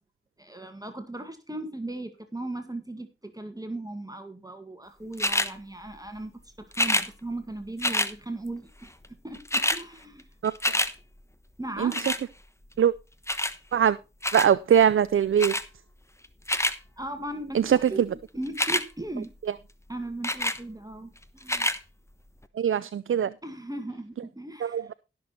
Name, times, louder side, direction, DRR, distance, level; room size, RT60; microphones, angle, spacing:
voice 1, 0.4-10.3 11.6-12.0 17.0-19.3 19.9-21.7 23.4-24.9, right 1 dB, 15° right, 1.8 m, -37 dB
sound 1, 5.2-5.5 6.7-7.1 7.8-8.1 9.0-9.1 9.3-9.8 10.2-10.9 11.9-12.2 13.3-13.6 14.2-14.5 15.4-15.6 16.2-16.8 18.5-18.8 20.2-20.6 21.4-21.8 22.4-22.5, left 1 dB, 15° left, 1.1 m, -26 dB
voice 2, 10.4-10.8 11.8-12.0 12.8-12.9 13.7-14.0 14.3-15.5 17.5-18.1 22.5-23.3 24.6-24.9, right 9 dB, 75° right, 0.4 m, -22 dB
16.5 x 6.7 x 4.1 m
cardioid pair, 50°, 21 cm